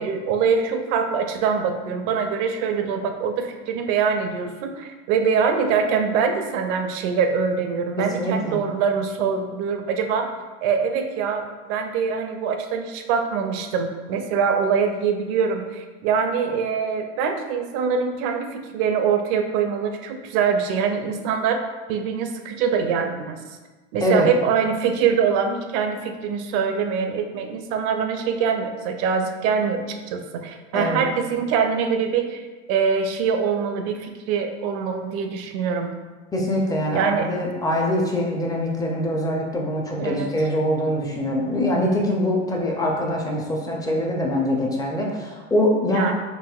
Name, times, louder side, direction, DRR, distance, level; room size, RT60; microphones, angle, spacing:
voice 1, 0.0-10.3 10.6-21.6 21.9-23.4 23.9-35.9 36.9-37.3 40.0-40.3 45.9-46.1, right 6 dB, 50° right, 6 dB, 0.5 m, -24 dB
voice 2, 8.0-8.6 24.0-24.3 30.7-31.0 36.3-46.1, left 1 dB, 10° left, -1 dB, 0.4 m, -23 dB
4.1 x 2.5 x 2.3 m, 1.3 s
hypercardioid pair, 100°, 37 cm